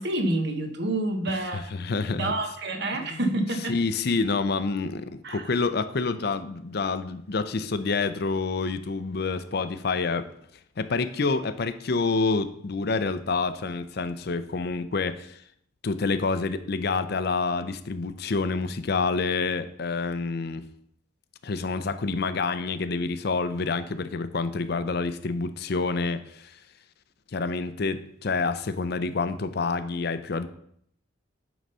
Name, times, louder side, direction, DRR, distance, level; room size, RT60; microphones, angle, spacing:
voice 1, 0.0-1.7 2.2-3.8 5.2-5.5, right 1 dB, 60° right, 6 dB, 1.1 m, -28 dB
voice 2, 1.5-2.3 2.9-3.2 3.7-10.3 10.8-15.4 15.8-20.6 21.4-26.5 27.3-30.5, left 4 dB, 55° left, 11 dB, 0.6 m, -28 dB
9.3 x 4.0 x 5.5 m, 0.69 s
head